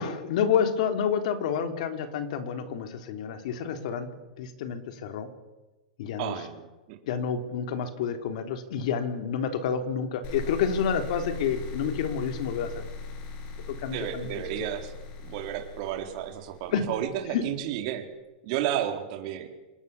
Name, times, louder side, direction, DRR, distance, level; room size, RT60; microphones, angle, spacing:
voice 1, 0.0-4.1 4.4-5.3 6.0-6.3 7.1-12.9 13.7-14.7 16.7-16.8 17.3-17.4, left 7 dB, 60° left, 7 dB, 3.6 m, -29 dB
voice 2, 6.2-7.0 13.9-14.9 15.2-18.0 18.4-19.5, right 11 dB, 50° right, 5 dB, 4.1 m, -32 dB
sound 1, 10.2-17.4, left 4 dB, 40° left, 7.5 m, -40 dB
26.5 x 20.5 x 7.2 m, 1.1 s
supercardioid pair, 150°, 4 cm